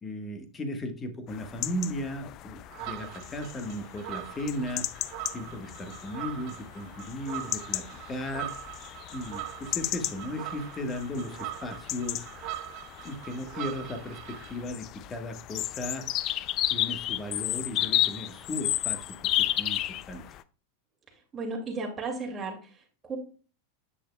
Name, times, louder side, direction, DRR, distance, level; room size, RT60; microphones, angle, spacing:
voice 1, 0.0-12.6 13.0-16.0 16.7-20.2, left 1 dB, 20° left, 7 dB, 1.3 m, -36 dB
sound 1, 1.3-20.4, left 14 dB, 45° left, 0.4 m, -34 dB
sound 2, 2.7-14.6, right 15 dB, 55° right, 0.6 m, -42 dB
voice 2, 21.3-23.2, right 3 dB, 20° right, 1 dB, 2.3 m, -35 dB
8.3 x 6.3 x 2.3 m, 0.38 s
hypercardioid pair, 115°, 0 cm